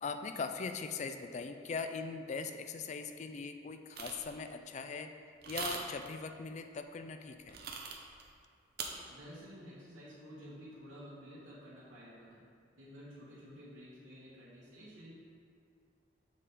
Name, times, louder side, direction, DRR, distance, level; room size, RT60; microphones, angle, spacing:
voice 1, 0.0-5.1 5.5-7.6, left 4 dB, 35° left, 7 dB, 0.3 m, -40 dB
sound 1, 4.0-4.3 5.4-6.1 7.5-8.2 8.8-8.9, right 5 dB, 55° right, 0.6 m, -40 dB
voice 2, 8.9-12.4 12.8-15.1, equal, 80° right, -12 dB, 1.3 m, -52 dB
7.3 x 4.1 x 3.7 m, 2.3 s
head